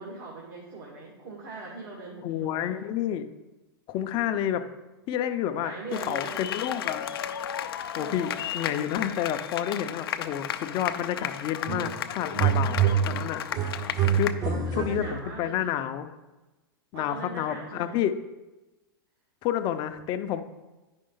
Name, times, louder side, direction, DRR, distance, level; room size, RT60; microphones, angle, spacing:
voice 1, 0.0-2.9 5.6-6.4 7.9-8.4 12.4-13.3 14.4-15.9 16.9-18.0, right 3 dB, 70° right, -3 dB, 2.0 m, -41 dB
voice 2, 2.2-3.3 3.9-4.6 5.1-7.1 8.0-13.4 14.1-16.1 16.9-18.1 19.4-20.4, left 10 dB, 40° left, 9 dB, 0.7 m, -30 dB
sound 1, 5.9-14.3, left 10 dB, 75° left, 0.6 m, -34 dB
sound 2, 11.7-12.0 12.3-15.4, right 8 dB, 30° right, 0.9 m, -26 dB
9.5 x 5.3 x 3.9 m, 1.1 s
hypercardioid pair, 125°, 12 cm